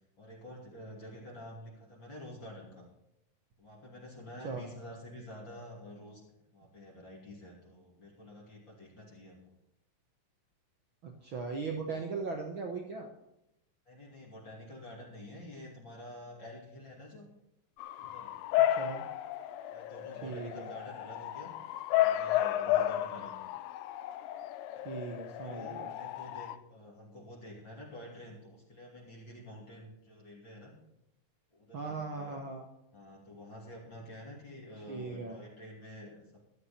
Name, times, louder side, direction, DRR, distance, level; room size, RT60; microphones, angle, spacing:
voice 1, 0.2-2.8 3.6-6.2 6.5-9.4 13.8-17.3 18.0-18.4 19.7-21.5 21.9-23.4 25.4-30.7 31.5-32.4 32.9-36.4, left 1 dB, 35° left, -4 dB, 3.1 m, -49 dB
voice 2, 11.0-13.1 18.7-19.1 20.2-20.7 24.8-25.9 31.7-32.6 34.9-35.4, right 4 dB, 70° right, 2 dB, 1.2 m, -38 dB
Bark / Motor vehicle (road) / Siren, 17.8-26.6, left 13 dB, 80° left, 2.3 m, -33 dB
14.0 x 12.0 x 4.3 m, 0.84 s
omnidirectional pair, 4.0 m